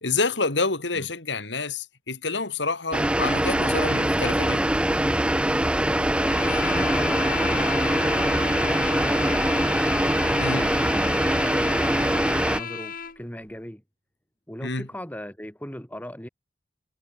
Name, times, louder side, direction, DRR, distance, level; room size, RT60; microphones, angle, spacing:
voice 1, 0.0-4.6 10.4-10.7 14.6-14.9, left 3 dB, 75° left, 3.3 m, -28 dB
sound 1, 2.9-12.6, right 1 dB, 5° right, 0.7 m, -23 dB
sound 2, 6.1-13.2, left 7 dB, 50° left, 3.2 m, -33 dB
voice 2, 6.4-8.1 8.6-9.8 10.5-13.8 14.5-16.3, equal, 10° left, 5.7 m, -38 dB
head